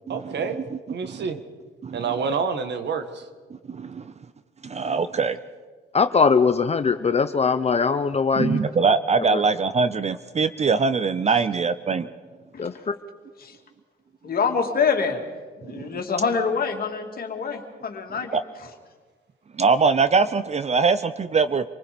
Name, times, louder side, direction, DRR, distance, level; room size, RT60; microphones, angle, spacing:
voice 1, 0.1-0.6 0.9-1.4 1.9-3.2, right 5 dB, 60° right, 8 dB, 1.7 m, -28 dB
voice 2, 0.7-1.3 1.8-2.0 3.7-4.0 4.6-5.4 8.4-12.1 15.7-16.0 18.3-18.4 19.6-21.6, right 4 dB, 35° right, 13 dB, 0.7 m, -22 dB
voice 3, 5.9-8.6 9.3-9.4 12.6-12.7, left 5 dB, 30° left, 10 dB, 0.8 m, -21 dB
voice 4, 14.2-15.2 15.6-18.4, left 5 dB, 50° left, 3 dB, 2.7 m, -26 dB
26.5 x 19.5 x 5.3 m, 1.4 s
cardioid pair, 90°, 20 cm